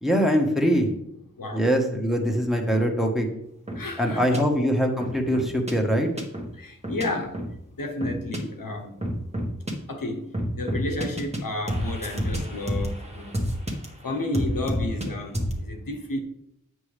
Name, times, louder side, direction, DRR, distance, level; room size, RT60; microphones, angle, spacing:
voice 1, 0.0-0.9 1.5-3.3 4.0-6.1, equal, ahead, 1.2 m, -23 dB
voice 2, 3.7-4.5 6.5-7.4 7.8-8.9 9.9-13.4 14.0-16.2, left 2 dB, 85° left, 1.0 m, -32 dB
sound 1, 3.7-3.8 4.3-4.4 5.0-5.7 6.2-6.5 6.8-7.0 7.3-7.5 8.0-8.4 9.0-9.7 10.3-11.4 11.7-13.9 14.3-15.1 15.3-15.6, equal, 20° right, 1.4 m, -29 dB
8.2 x 6.2 x 3.3 m
wide cardioid pair, 60°, 33 cm